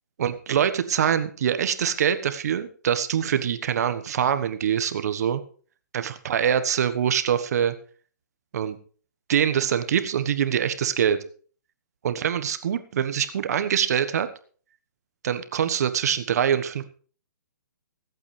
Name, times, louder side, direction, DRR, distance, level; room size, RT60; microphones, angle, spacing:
voice 1, 0.2-5.4 5.9-7.7 8.5-8.8 9.3-11.2 12.0-14.3 15.2-16.8, right 9 dB, 60° right, 11 dB, 1.3 m, -24 dB
23.5 x 8.5 x 3.3 m, 0.42 s
hypercardioid pair, 140°, 10 cm